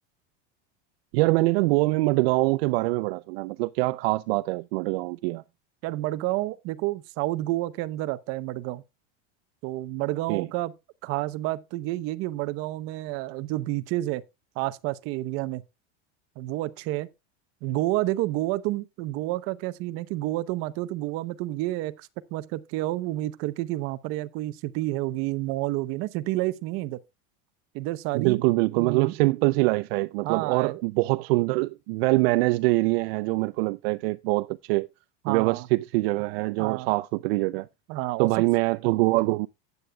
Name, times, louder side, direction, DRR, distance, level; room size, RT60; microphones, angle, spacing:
voice 1, 1.1-5.4 10.3-10.5 28.1-34.9 35.3-37.7 38.2-39.5, right 22 dB, 65° right, 0.5 m, -24 dB
voice 2, 5.8-8.8 9.6-10.7 11.0-14.2 14.6-15.6 16.4-17.1 17.6-27.0 27.7-28.4 28.8-29.1 30.2-30.8 35.2-35.7 36.6-36.9 37.9-38.3, right 17 dB, 45° right, 0.8 m, -29 dB
15.0 x 9.6 x 2.3 m
supercardioid pair, 165°, 33 cm